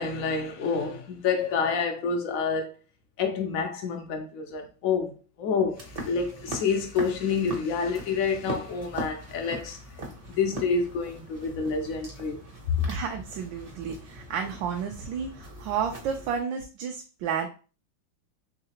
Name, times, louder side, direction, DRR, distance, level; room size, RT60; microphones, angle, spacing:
voice 1, 0.0-2.7 3.2-9.8 10.3-12.9, left 5 dB, 75° left, 0.7 m, -28 dB
sound 1, 5.7-16.4, right 1 dB, 55° right, 0.4 m, -41 dB
voice 2, 12.9-17.5, right 7 dB, 80° right, 1.2 m, -31 dB
3.7 x 3.2 x 2.8 m
omnidirectional pair, 2.1 m